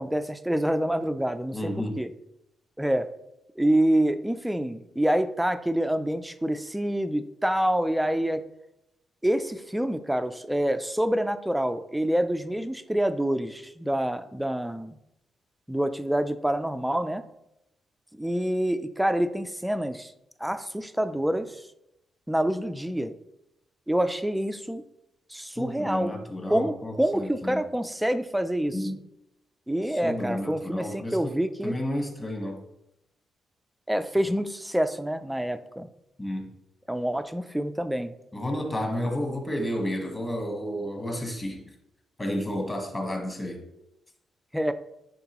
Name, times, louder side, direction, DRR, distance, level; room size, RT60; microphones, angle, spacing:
voice 1, 0.0-2.1 2.8-3.1 3.6-8.4 9.2-15.0 15.7-17.2 18.1-20.1 20.4-21.6 22.3-23.1 23.9-24.8 25.3-26.1 26.5-28.9 29.7-31.7 33.9-35.9 36.9-38.1 44.5-44.7, right 1 dB, 5° right, 11 dB, 0.4 m, -27 dB
voice 2, 1.5-2.0 25.6-27.6 28.7-29.0 29.9-32.6 36.2-36.5 38.3-41.6 42.2-43.6, left 1 dB, 20° left, 2 dB, 1.3 m, -31 dB
9.8 x 3.6 x 3.0 m, 0.85 s
cardioid pair, 115°, 0 cm